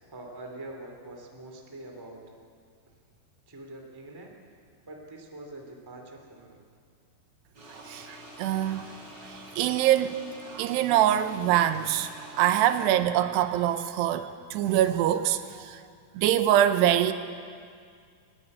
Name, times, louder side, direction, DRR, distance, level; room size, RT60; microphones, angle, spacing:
voice 1, 0.1-2.3 3.5-4.4 4.8-6.6, right 2 dB, 10° right, 1.5 m, -44 dB
sound 1, 7.5-12.9, right 1 dB, 25° right, 5.1 m, -47 dB
voice 2, 7.7-8.9 9.3-10.2 10.5-12.1 12.4-15.8 16.2-17.1, right 12 dB, 90° right, 3.0 m, -24 dB
28.5 x 12.0 x 9.5 m
omnidirectional pair, 4.7 m